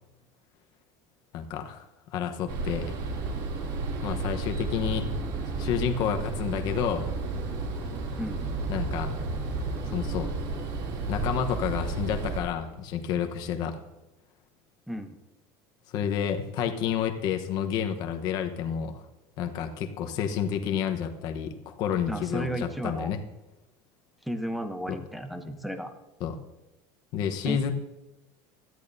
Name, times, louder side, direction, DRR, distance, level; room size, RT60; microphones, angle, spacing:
voice 1, 1.3-1.8 2.1-2.9 4.0-5.1 5.6-7.1 8.7-9.1 9.9-10.3 11.1-13.8 15.9-19.0 19.4-23.2 24.9-25.0 26.2-26.4 27.1-27.7, left 8 dB, 45° left, 6 dB, 1.0 m, -30 dB
sound 1, 2.5-12.4, right 3 dB, 55° right, 2.9 m, -32 dB
voice 2, 22.1-23.1 24.2-25.9 27.4-27.7, equal, ahead, 7 dB, 0.8 m, -33 dB
17.5 x 13.0 x 2.7 m, 1.0 s
cardioid pair, 175°, 10 cm